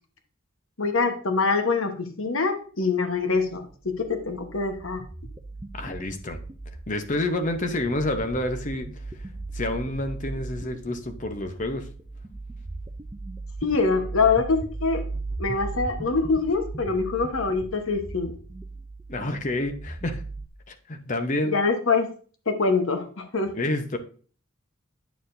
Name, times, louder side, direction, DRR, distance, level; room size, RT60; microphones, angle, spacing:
voice 1, 0.8-5.0 13.6-15.0 15.4-18.3 21.5-22.1 22.5-23.5, left 4 dB, 75° left, 6 dB, 1.1 m, -24 dB
sound 1, 3.3-20.5, right 2 dB, 15° right, 0.4 m, -38 dB
voice 2, 5.7-6.4 6.9-8.9 9.5-11.9 19.1-20.2 20.7-21.6 23.5-24.0, left 1 dB, 35° left, 7 dB, 0.8 m, -28 dB
9.2 x 6.7 x 2.6 m, 0.41 s
head